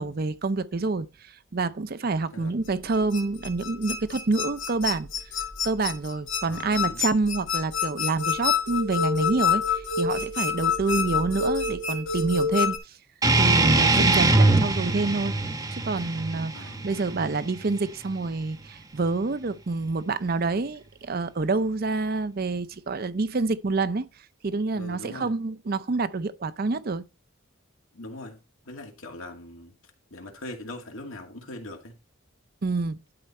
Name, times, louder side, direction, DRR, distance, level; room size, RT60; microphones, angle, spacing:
voice 1, 0.0-5.1 5.6-12.8 13.4-16.6 16.8-24.1 24.4-27.0 32.6-33.0, right 3 dB, 50° right, 0.6 m, -27 dB
sound 1, 2.7-12.8, left 6 dB, 65° left, 1.6 m, -27 dB
voice 2, 6.5-7.0 10.9-11.2 16.5-17.2 24.7-25.3 27.9-28.4 28.7-29.7 30.1-31.9, left 2 dB, 80° left, 2.2 m, -41 dB
sound 2, 13.2-18.3, right 2 dB, 20° right, 0.9 m, -22 dB
11.5 x 4.3 x 4.2 m
head